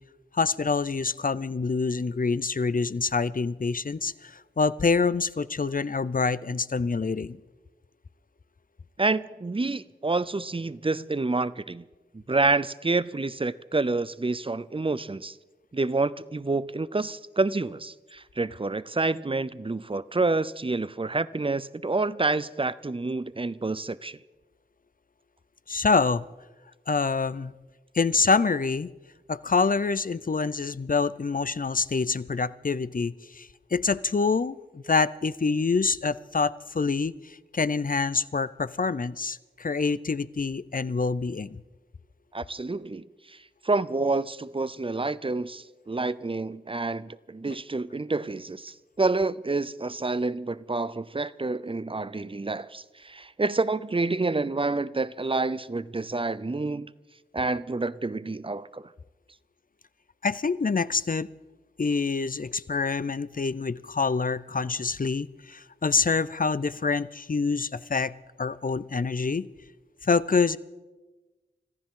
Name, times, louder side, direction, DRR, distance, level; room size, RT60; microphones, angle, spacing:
voice 1, 0.3-7.4 25.7-26.2 26.9-27.5 27.9-28.9 29.3-41.6 47.5-47.6 60.2-61.3 61.8-68.1 68.4-69.5 70.0-70.6, left 4 dB, 50° left, 0.5 m, -26 dB
voice 2, 9.0-11.8 12.1-15.3 15.7-24.2 42.3-43.4 43.6-56.9 57.3-58.9, right 3 dB, 30° right, 0.5 m, -28 dB
25.5 x 14.5 x 3.8 m
wide cardioid pair, 45°, 19 cm